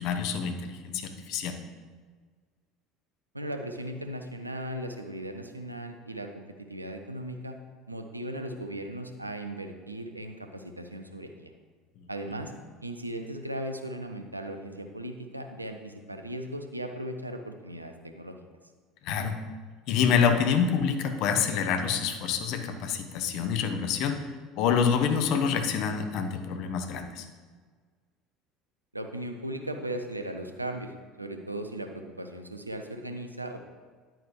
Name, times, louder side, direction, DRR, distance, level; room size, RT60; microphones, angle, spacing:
voice 1, 0.0-1.6 19.0-19.4 19.9-24.2 24.5-27.3, left 7 dB, 55° left, 7 dB, 1.0 m, -27 dB
voice 2, 3.3-7.6 7.9-11.5 12.1-12.5 12.8-18.4 28.9-30.9 31.2-33.6, right 1 dB, 90° right, 6 dB, 0.7 m, -37 dB
10.5 x 9.0 x 3.2 m, 1.5 s
figure-of-eight pair, 65°, 0 cm